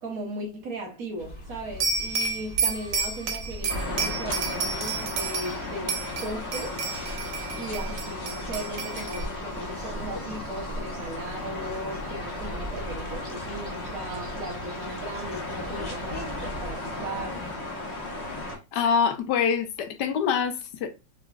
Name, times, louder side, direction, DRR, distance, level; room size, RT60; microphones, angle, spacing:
voice 1, 0.0-6.8 7.5-17.5, right 1 dB, 60° right, 1.2 m, -37 dB
sound 1, 1.2-17.5, equal, 5° left, 1.1 m, -42 dB
sound 2, 1.8-5.6 5.9-9.3, right 4 dB, 90° right, 1.5 m, -30 dB
sound 3, 3.7-18.6, left 2 dB, 45° left, 1.2 m, -35 dB
voice 2, 18.7-20.9, left 6 dB, 75° left, 1.2 m, -25 dB
3.8 x 3.0 x 2.3 m
omnidirectional pair, 1.9 m